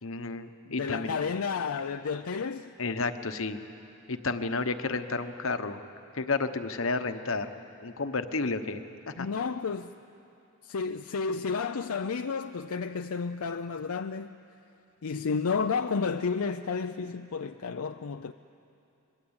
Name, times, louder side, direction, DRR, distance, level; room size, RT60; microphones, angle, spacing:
voice 1, 0.0-1.2 2.8-3.6 4.1-5.8 6.1-7.5 7.8-8.8 9.1-9.3, left 3 dB, 65° left, 1.1 m, -31 dB
voice 2, 0.7-2.7 9.2-9.9 10.6-14.3 15.0-18.3, left 5 dB, 85° left, 0.6 m, -31 dB
24.5 x 22.0 x 8.9 m
head